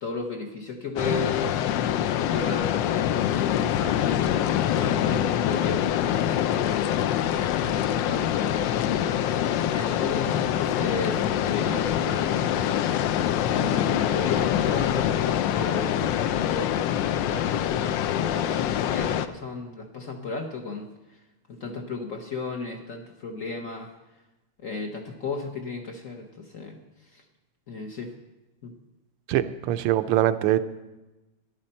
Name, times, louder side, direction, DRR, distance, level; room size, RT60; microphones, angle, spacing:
voice 1, 0.0-7.0 7.6-12.9 13.4-16.8 17.3-21.2 21.5-23.9 24.6-26.8 27.1-27.2 27.7-28.1 28.6-28.7, left 4 dB, 50° left, 3 dB, 1.1 m, -34 dB
sound 1, 1.0-19.3, left 10 dB, 75° left, 1.0 m, -25 dB
voice 2, 29.3-30.6, right 13 dB, 85° right, 12 dB, 1.5 m, -23 dB
14.0 x 10.5 x 4.3 m, 1.1 s
omnidirectional pair, 2.4 m